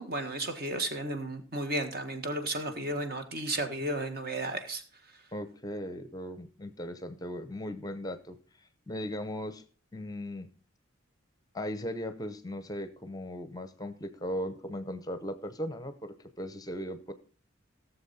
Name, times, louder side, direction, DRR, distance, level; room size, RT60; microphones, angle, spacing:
voice 1, 0.0-4.8, right 1 dB, 50° right, 7 dB, 1.5 m, -33 dB
voice 2, 5.3-9.6 9.9-10.5 11.5-17.1, equal, 20° left, 11 dB, 0.7 m, -38 dB
17.0 x 7.1 x 4.2 m, 0.38 s
head